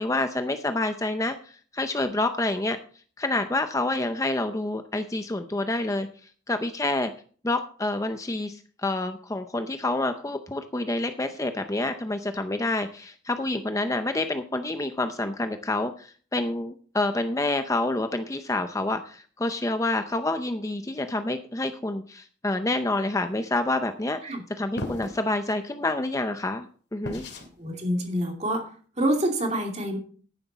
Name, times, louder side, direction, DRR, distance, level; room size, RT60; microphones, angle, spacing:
voice 1, 0.0-2.8 3.2-6.1 6.5-7.1 7.4-27.2, left 2 dB, 15° left, 8 dB, 0.6 m, -28 dB
sound 1, 24.8-25.2 27.0-27.5, left 1 dB, 60° left, 2.5 m, -34 dB
voice 2, 27.6-28.7 29.0-30.0, right 1 dB, 35° right, 2 dB, 2.6 m, -26 dB
10.5 x 10.0 x 4.1 m, 0.43 s
head